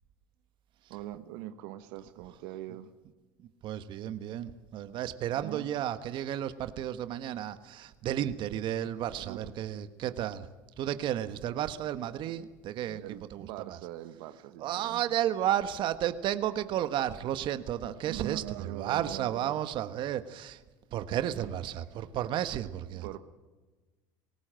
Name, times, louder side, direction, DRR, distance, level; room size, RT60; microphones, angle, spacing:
voice 1, 0.9-2.9 5.4-5.7 9.2-9.5 12.8-15.2 18.0-19.6 21.4-21.6 23.0-23.2, right 14 dB, 75° right, 10 dB, 1.3 m, -42 dB
voice 2, 3.4-10.5 10.8-13.0 13.3-13.8 14.6-20.6 20.9-23.1, right 11 dB, 55° right, 11 dB, 1.4 m, -33 dB
20.5 x 18.0 x 7.7 m, 1.2 s
supercardioid pair, 100°, 10 cm